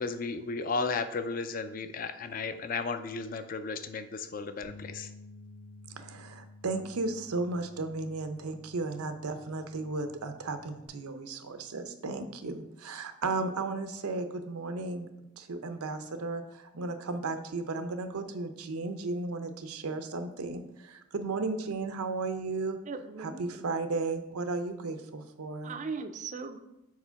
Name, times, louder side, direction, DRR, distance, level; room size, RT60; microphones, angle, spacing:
voice 1, 0.0-5.1, left 4 dB, 40° left, 10 dB, 0.4 m, -34 dB
sound 1, 4.6-10.9, left 2 dB, 65° left, 1.4 m, -52 dB
voice 2, 5.9-15.1 15.4-22.8 23.2-25.7, right 3 dB, 90° right, 9 dB, 0.6 m, -35 dB
voice 3, 22.9-23.8 25.6-26.6, right 4 dB, 35° right, 9 dB, 0.4 m, -39 dB
4.8 x 4.3 x 5.6 m, 0.91 s
head